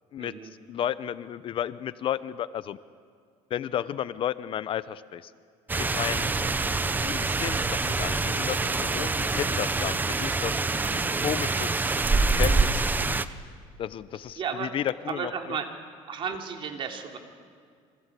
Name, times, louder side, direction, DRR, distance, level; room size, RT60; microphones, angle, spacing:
voice 1, 0.2-0.5 10.7-11.0 14.3-14.7 15.1-15.7 16.1-17.2, right 6 dB, 40° right, 4 dB, 3.1 m, -34 dB
voice 2, 0.7-2.8 3.5-5.3 5.8-6.3 6.8-10.6 11.2-12.0 12.3-13.0 13.8-15.3, left 10 dB, 45° left, 15 dB, 0.7 m, -32 dB
sound 1, 5.7-13.3, right 3 dB, 15° right, 0.9 m, -26 dB
28.0 x 24.5 x 8.3 m, 2.1 s
cardioid pair, 135°, 13 cm